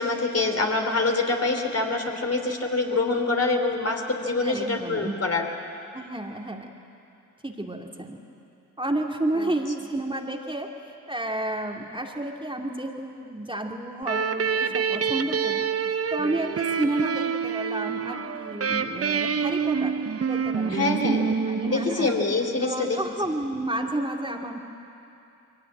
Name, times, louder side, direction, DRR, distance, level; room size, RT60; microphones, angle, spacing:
voice 1, 0.0-5.5 9.4-9.5 20.7-21.2 21.6-23.0, left 3 dB, 40° left, 3 dB, 3.2 m, -25 dB
voice 2, 4.4-5.1 5.9-6.6 7.4-8.2 8.8-19.9 20.3-22.1 22.6-24.6, right 1 dB, 15° right, 1 dB, 2.5 m, -31 dB
sound 1, 14.0-22.5, right 6 dB, 40° right, 0.9 m, -27 dB
22.5 x 17.5 x 8.7 m, 2.6 s
hypercardioid pair, 40°, 38 cm